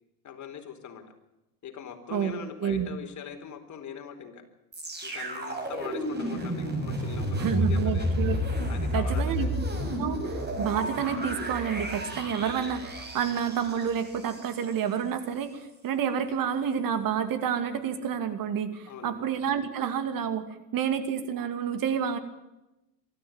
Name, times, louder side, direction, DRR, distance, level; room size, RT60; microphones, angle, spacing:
voice 1, 0.2-1.0 1.6-4.4 5.0-8.1 8.7-9.5 18.9-19.2, left 7 dB, 35° left, 5 dB, 4.1 m, -41 dB
sound 1, 4.7-14.8 15.4-15.5, equal, 20° right, 6.4 m, -31 dB
voice 2, 7.4-8.4 8.9-9.7 10.0-20.4 20.7-22.2, right 8 dB, 45° right, 10 dB, 2.5 m, -29 dB
23.5 x 13.5 x 8.9 m, 0.95 s
hypercardioid pair, 90°, 47 cm